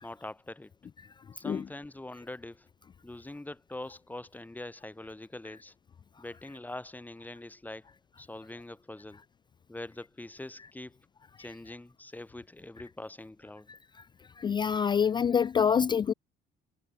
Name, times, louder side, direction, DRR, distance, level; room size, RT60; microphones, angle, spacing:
voice 1, 0.0-0.7 1.3-2.7 3.0-5.7 6.2-7.9 8.2-9.2 9.7-11.0 11.4-13.7, left 2 dB, 10° left, 4.5 m, -43 dB
voice 2, 14.4-16.1, left 7 dB, 25° left, 0.3 m, -26 dB
cardioid pair, 110°, 17 cm